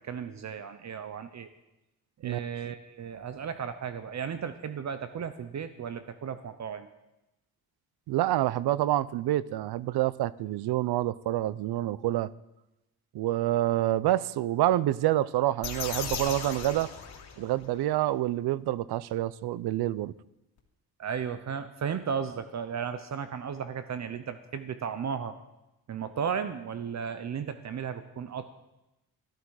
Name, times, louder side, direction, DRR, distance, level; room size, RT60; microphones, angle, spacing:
voice 1, 0.0-1.5 2.2-6.9 21.0-25.3 25.9-28.5, right 7 dB, 45° right, 10 dB, 0.7 m, -35 dB
voice 2, 8.1-12.3 13.1-16.9 17.4-20.1, right 14 dB, 90° right, 19 dB, 0.6 m, -27 dB
sound 1, 15.6-17.7, left 6 dB, 85° left, 2.8 m, -37 dB
14.5 x 13.0 x 4.8 m, 0.94 s
cardioid pair, 145°, 38 cm